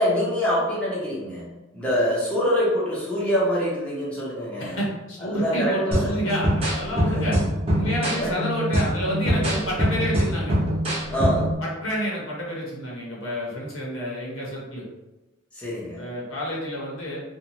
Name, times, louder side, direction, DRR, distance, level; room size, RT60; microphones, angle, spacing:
voice 1, 0.0-4.8 5.2-6.1 7.1-7.2 7.9-8.3 11.1-11.5 15.5-16.0, equal, 5° left, -8 dB, 0.7 m, -25 dB
voice 2, 4.6-7.4 7.7-10.6 11.6-14.8 15.9-17.2, equal, 70° left, -3 dB, 0.9 m, -29 dB
sound 1, 5.9-11.5, equal, 30° right, 0.6 m, -24 dB
2.6 x 2.3 x 2.9 m, 1.0 s
head